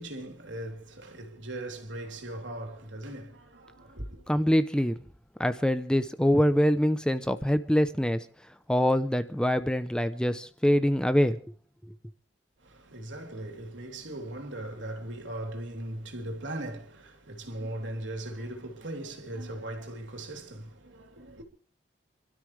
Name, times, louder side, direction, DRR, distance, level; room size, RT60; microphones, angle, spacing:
voice 1, 0.0-4.2 12.6-21.4, right 1 dB, 90° right, 3.3 m, -39 dB
voice 2, 4.3-5.0 5.4-8.2 8.7-11.4, equal, 5° left, 0.7 m, -24 dB
28.5 x 13.0 x 3.3 m
head